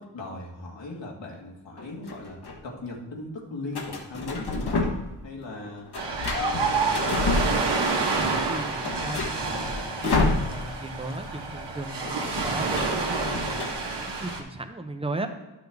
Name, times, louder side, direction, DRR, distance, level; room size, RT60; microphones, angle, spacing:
voice 1, 0.0-5.0 5.2-5.9 6.2-7.6, left 2 dB, 80° left, -2 dB, 2.0 m, -38 dB
sound 1, 1.8-2.6 3.7-5.2 5.5-8.0 8.3-8.4 8.7-10.9 11.2-11.4 11.6-13.7, left 3 dB, 60° left, 1.3 m, -29 dB
Ocean, 5.9-14.4, right 3 dB, 65° right, 1.5 m, -28 dB
voice 2, 8.5-9.7 10.0-15.3, right 2 dB, 15° right, 7 dB, 0.7 m, -36 dB
11.5 x 6.0 x 3.5 m, 1.1 s
wide cardioid pair, 120°, 43 cm